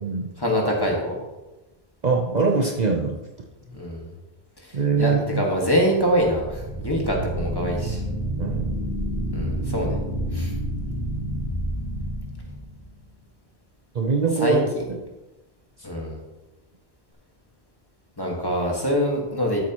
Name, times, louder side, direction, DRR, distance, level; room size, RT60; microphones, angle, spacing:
voice 1, 0.4-1.2 3.7-4.1 4.6-8.0 9.3-10.0 10.3-10.5 14.4-14.6 15.8-16.2 18.2-19.7, equal, 20° left, -1 dB, 1.8 m, -24 dB
voice 2, 2.0-3.1 4.7-5.5 8.4-8.8 13.9-14.6 14.9-15.0, right 4 dB, 45° right, 1 dB, 0.8 m, -22 dB
sound 1, 6.1-13.1, equal, 20° right, 2.2 m, -29 dB
13.0 x 7.4 x 3.0 m, 1.1 s
omnidirectional pair, 1.1 m